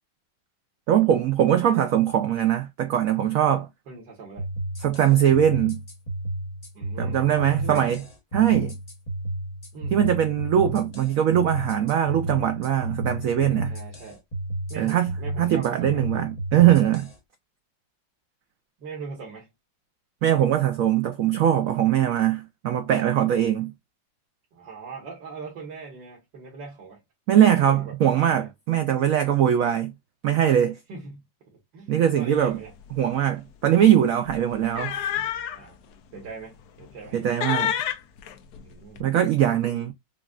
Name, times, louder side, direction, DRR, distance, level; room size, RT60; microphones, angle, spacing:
voice 1, 0.9-3.7 4.8-5.8 7.0-8.0 8.3-8.7 9.9-13.7 14.8-15.1 15.4-17.1 20.2-23.7 27.3-29.9 30.2-30.8 31.9-32.6 33.0-35.0 37.1-37.7 39.0-39.9, right 10 dB, 90° right, 0.7 m, -21 dB
voice 2, 1.5-1.9 3.4-4.5 6.7-7.9 9.7-10.3 13.7-14.2 14.7-16.1 18.8-19.5 24.5-27.0 27.3-28.0 28.2-28.5 30.9-31.2 31.7-32.7 35.5-35.8 36.1-37.2 38.6-39.0 39.5-39.9, right 4 dB, 75° right, 2.0 m, -40 dB
sound 1, 4.4-17.1, right 1 dB, 25° left, 0.9 m, -32 dB
sound 2, 32.5-32.7 33.0-33.2 34.3-35.7 36.2-36.3 36.8-37.2 37.4-39.0, left 10 dB, 70° left, 1.1 m, -29 dB
5.0 x 2.4 x 2.4 m
omnidirectional pair, 2.0 m